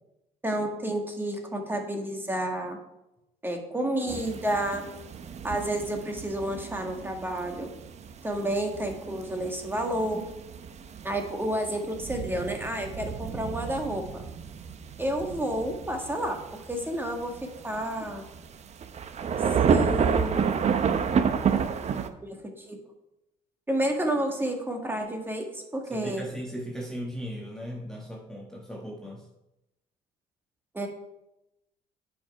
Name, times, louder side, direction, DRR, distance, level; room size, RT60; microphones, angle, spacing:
voice 1, 0.4-2.8 3.4-4.8 5.4-7.7 8.2-10.2 11.0-14.2 15.0-17.3 17.6-18.2 19.7-20.7 22.2-22.8 23.7-26.2 30.7-30.9, right 1 dB, 10° right, 3 dB, 1.7 m, -30 dB
sound 1, 4.1-22.1, right 6 dB, 40° right, 0.7 m, -30 dB
voice 2, 25.9-29.2, equal, 5° left, -2 dB, 1.3 m, -37 dB
8.9 x 5.4 x 5.4 m, 0.90 s
cardioid pair, 110°, 17 cm